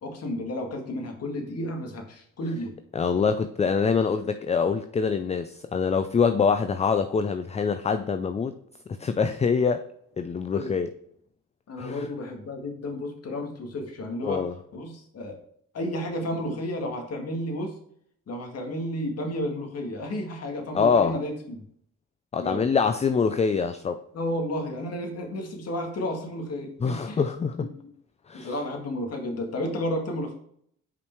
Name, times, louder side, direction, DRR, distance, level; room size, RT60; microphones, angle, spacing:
voice 1, 0.0-2.7 10.5-10.7 11.7-14.4 14.7-15.4 15.7-17.7 18.3-21.6 22.4-22.6 24.1-27.2 27.6-27.7 28.3-30.3, left 1 dB, 55° left, 1.9 m, -32 dB
voice 2, 2.9-8.5 9.0-9.9 10.2-10.9 11.8-12.1 14.2-14.5 20.7-21.2 22.3-24.0 26.8-27.7 28.3-28.5, left 5 dB, 20° left, 0.4 m, -24 dB
5.5 x 5.1 x 4.5 m
cardioid pair, 90°, 30 cm